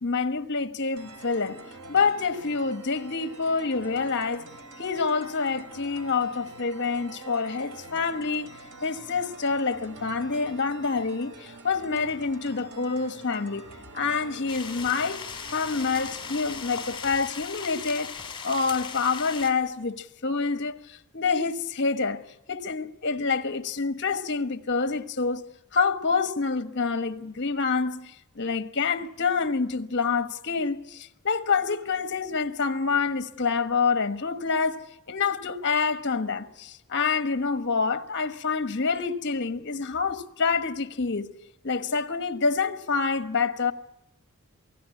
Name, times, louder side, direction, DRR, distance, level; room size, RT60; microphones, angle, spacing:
voice 1, 0.0-1.6 1.9-4.5 4.8-8.5 8.8-13.6 13.9-15.2 15.5-18.1 18.4-22.2 22.5-25.5 25.7-28.1 28.3-41.3 41.6-43.7, left 4 dB, 55° left, 1.3 m, -27 dB
sound 1, 1.0-17.0, right 2 dB, 80° right, 2.7 m, -46 dB
sound 2, 14.5-19.5, left 6 dB, 20° left, 3.8 m, -38 dB
28.0 x 18.0 x 8.4 m
head